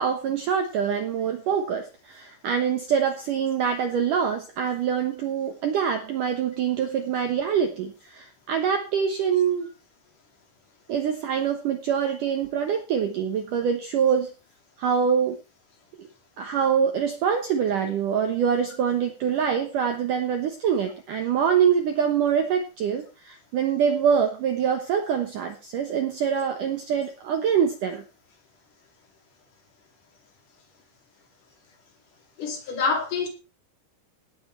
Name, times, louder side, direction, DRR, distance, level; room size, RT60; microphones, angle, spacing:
voice 1, 0.0-9.7 10.9-14.3 14.8-15.4 16.4-28.0, right 7 dB, 70° right, 2.1 m, -25 dB
voice 2, 32.4-33.3, left 4 dB, 50° left, 3.7 m, -26 dB
18.0 x 8.0 x 4.4 m
omnidirectional pair, 5.3 m